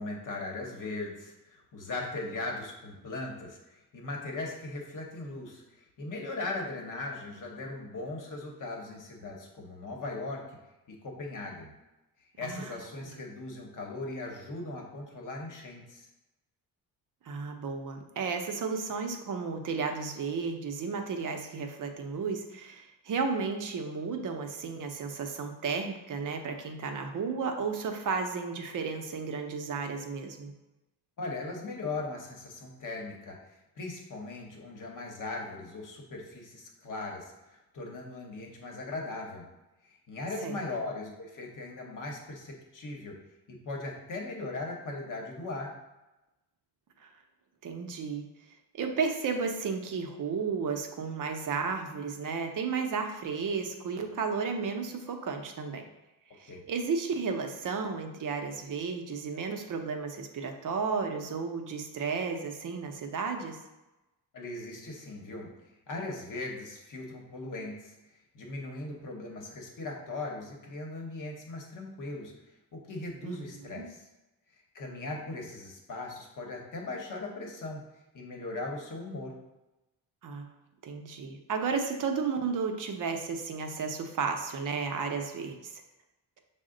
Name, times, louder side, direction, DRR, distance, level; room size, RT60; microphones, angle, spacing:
voice 1, 0.0-5.6 6.0-10.6 10.9-11.7 12.4-16.1 31.2-33.4 33.8-39.5 39.8-43.2 43.5-45.7 56.5-56.6 64.3-65.5 65.9-67.9 68.3-72.3 72.7-74.0 74.7-77.8 78.1-79.4, left 2 dB, 50° left, 0 dB, 0.9 m, -39 dB
voice 2, 12.4-12.7 13.0-13.2 17.2-30.5 40.4-40.6 47.0-47.1 47.6-48.2 48.7-55.8 56.3-63.6 73.2-73.4 73.7-73.8 80.2-80.5 80.8-85.7, right 5 dB, 50° right, 4 dB, 0.6 m, -33 dB
6.0 x 2.1 x 3.7 m, 1.0 s
cardioid pair, 135°, 40 cm